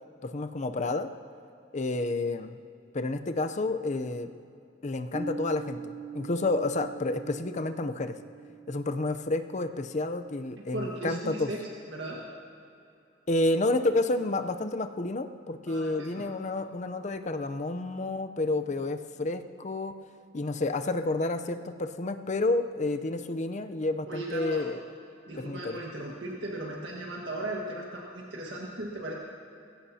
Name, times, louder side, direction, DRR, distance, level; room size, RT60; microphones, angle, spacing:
voice 1, 0.2-1.1 1.7-2.6 2.9-4.3 4.8-8.2 8.7-11.5 13.3-19.9 20.3-24.8 25.4-25.8, left 2 dB, 40° left, 9 dB, 0.6 m, -30 dB
Piano, 5.1-10.5, right 3 dB, 15° right, 0.9 m, -42 dB
voice 2, 10.7-12.2 15.7-16.2 24.1-24.6 25.3-29.1, right 1 dB, 75° right, -3 dB, 1.7 m, -37 dB
20.5 x 16.0 x 2.8 m, 2.6 s
head